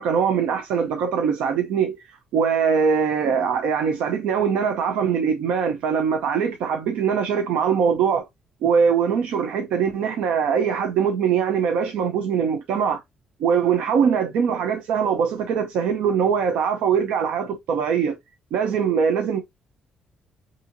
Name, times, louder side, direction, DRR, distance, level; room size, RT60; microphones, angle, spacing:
voice 1, 0.0-8.3 8.6-13.0 13.4-18.2 18.5-19.4, right 7 dB, 90° right, 0.7 m, -22 dB
5.6 x 2.7 x 2.6 m
cardioid pair, 170°, 2 cm